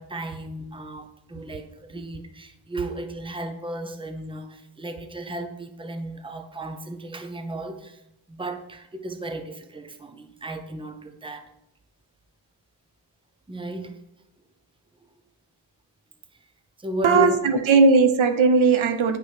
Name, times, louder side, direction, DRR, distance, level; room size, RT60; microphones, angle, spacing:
voice 1, 0.0-8.0 8.3-11.5 13.5-14.0 16.4-16.5 16.8-17.4, right 1 dB, 10° right, 7 dB, 0.8 m, -34 dB
voice 2, 17.0-19.2, right 4 dB, 90° right, 8 dB, 1.1 m, -18 dB
9.6 x 5.8 x 6.0 m, 0.84 s
wide cardioid pair, 170°, 46 cm